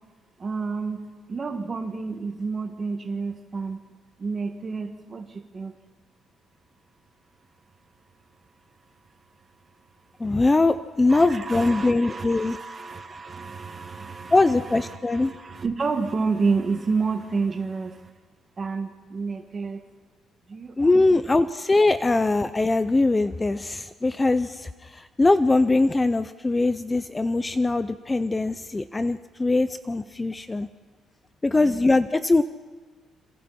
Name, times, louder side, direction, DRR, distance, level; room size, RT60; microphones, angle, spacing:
voice 1, 0.4-3.8 4.2-5.7 11.1-14.5 14.9-18.1 18.6-19.8 20.5-21.2 31.6-31.8, right 4 dB, 30° right, 5 dB, 2.0 m, -30 dB
voice 2, 10.2-12.6 14.3-15.3 20.8-30.7 31.4-32.4, left 2 dB, 15° left, 12 dB, 0.6 m, -22 dB
27.5 x 27.0 x 4.3 m, 1.4 s
cardioid pair, 145°, 0 cm